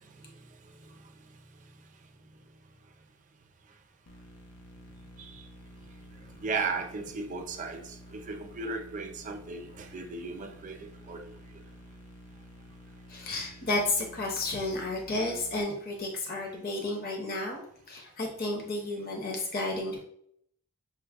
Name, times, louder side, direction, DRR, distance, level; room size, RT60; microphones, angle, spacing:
sound 1, 4.1-15.6, equal, 80° left, 0.6 m, -51 dB
voice 1, 6.4-7.8 8.1-11.2, right 4 dB, 35° right, 5 dB, 0.5 m, -35 dB
voice 2, 13.1-17.6 17.9-20.0, left 2 dB, 40° left, 0 dB, 0.8 m, -32 dB
6.0 x 2.1 x 3.4 m, 0.68 s
head